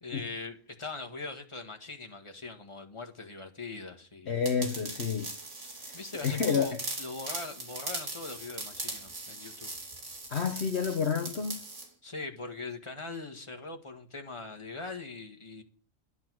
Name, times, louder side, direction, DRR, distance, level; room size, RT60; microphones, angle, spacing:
voice 1, 0.0-4.4 5.9-9.7 12.0-15.6, left 3 dB, 25° left, 1.7 m, -41 dB
voice 2, 4.3-5.3 6.2-6.8 10.3-11.6, left 6 dB, 60° left, 1.4 m, -29 dB
sound 1, 4.4-11.9, right 2 dB, 70° right, 3.0 m, -40 dB
12.5 x 11.0 x 6.3 m
omnidirectional pair, 1.3 m